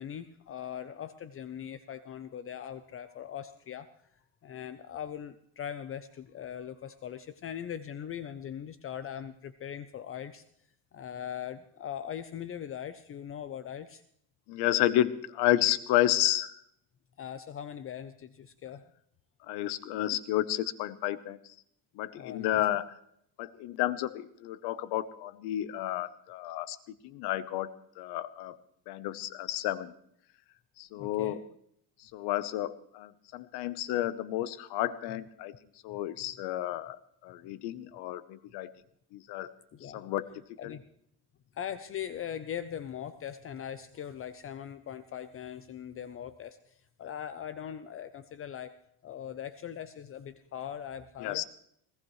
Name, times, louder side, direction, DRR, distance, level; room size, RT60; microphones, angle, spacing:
voice 1, 0.0-10.4 10.9-14.0 17.2-18.8 22.1-22.7 30.9-31.4 35.9-36.0 39.7-40.0 40.6-40.8 41.5-48.7 49.0-51.4, left 9 dB, 35° left, 12 dB, 0.6 m, -40 dB
voice 2, 14.5-16.6 19.5-21.4 22.0-22.9 23.4-26.8 27.0-28.6 28.9-29.9 30.8-31.4 32.0-35.5 35.8-37.0 37.2-38.7 39.1-39.5 39.8-40.3 40.6-40.7 51.2-51.4, left 14 dB, 90° left, 15 dB, 1.0 m, -31 dB
21.0 x 17.5 x 3.2 m, 0.70 s
cardioid pair, 140°, 38 cm